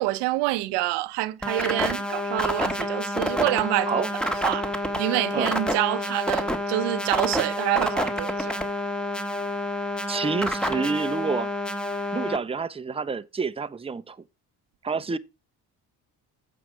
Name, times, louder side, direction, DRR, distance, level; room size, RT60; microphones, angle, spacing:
voice 1, 0.0-8.6, right 18 dB, 90° right, 0.7 m, -27 dB
sound 1, 1.4-12.4, left 1 dB, ahead, 1.4 m, -28 dB
voice 2, 10.1-11.5 12.1-14.2 14.8-15.2, right 5 dB, 15° right, 0.7 m, -28 dB
8.0 x 4.7 x 6.0 m
supercardioid pair, 80°, 40 cm